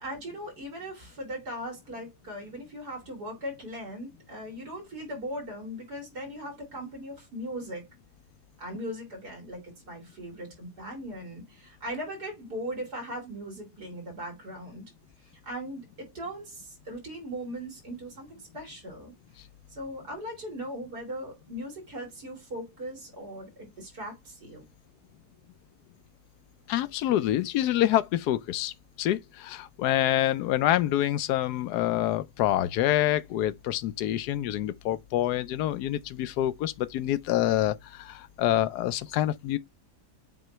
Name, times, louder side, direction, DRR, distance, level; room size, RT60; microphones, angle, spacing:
voice 1, 0.0-7.9 8.6-14.9 15.2-19.1 19.7-24.6, equal, 85° right, 4.0 m, -39 dB
voice 2, 26.7-39.6, left 13 dB, 90° left, 1.2 m, -27 dB
7.7 x 3.0 x 4.4 m
omnidirectional pair, 1.7 m